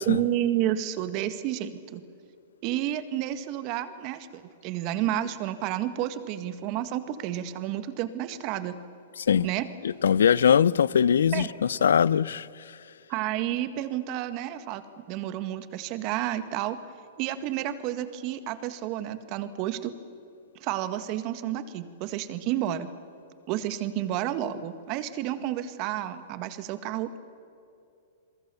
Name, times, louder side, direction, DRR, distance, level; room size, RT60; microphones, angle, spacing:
voice 1, 0.0-2.0 2.6-8.8 9.4-9.7 11.3-11.5 13.1-14.8 15.1-16.8 17.2-19.9 20.6-22.9 23.5-27.2, right 12 dB, 45° right, 1.8 m, -30 dB
voice 2, 9.8-11.5 11.8-12.5, left 8 dB, 80° left, 0.6 m, -21 dB
28.5 x 22.5 x 7.1 m
hypercardioid pair, 120°, 0 cm